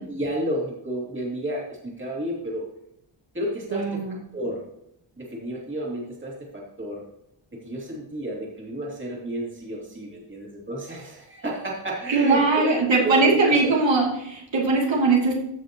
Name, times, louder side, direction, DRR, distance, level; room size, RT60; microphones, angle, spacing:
voice 1, 0.1-2.7 3.3-4.6 5.2-7.0 7.5-13.7, right 1 dB, 25° right, -3 dB, 2.6 m, -31 dB
voice 2, 3.7-4.2 12.1-15.4, right 3 dB, 70° right, -3 dB, 2.7 m, -21 dB
15.0 x 6.3 x 2.9 m, 0.79 s
wide cardioid pair, 155°, 46 cm